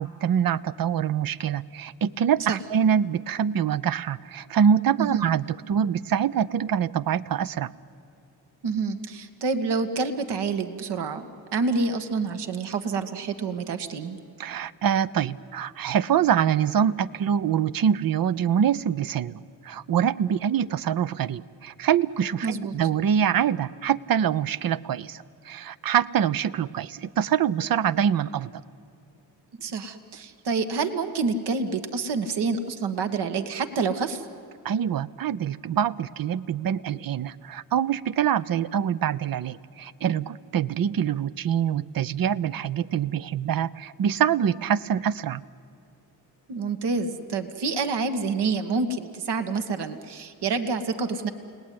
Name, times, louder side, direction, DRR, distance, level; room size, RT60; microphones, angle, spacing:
voice 1, 0.0-7.7 14.4-28.5 34.6-45.4, right 8 dB, 55° right, 16 dB, 0.8 m, -25 dB
voice 2, 8.6-14.2 22.4-22.7 29.6-34.2 46.5-51.3, right 4 dB, 70° right, 7 dB, 1.8 m, -28 dB
30.0 x 18.5 x 9.5 m, 2.5 s
supercardioid pair, 55°, 42 cm